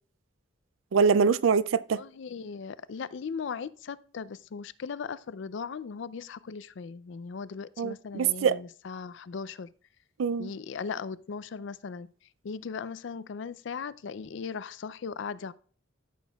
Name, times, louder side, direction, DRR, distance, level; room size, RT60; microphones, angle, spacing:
voice 1, 0.9-2.0 7.8-8.6 10.2-10.5, right 6 dB, 80° right, 0.4 m, -24 dB
voice 2, 1.9-9.7 10.4-12.1 12.4-15.5, left 5 dB, 65° left, 0.4 m, -38 dB
13.5 x 6.2 x 2.3 m
head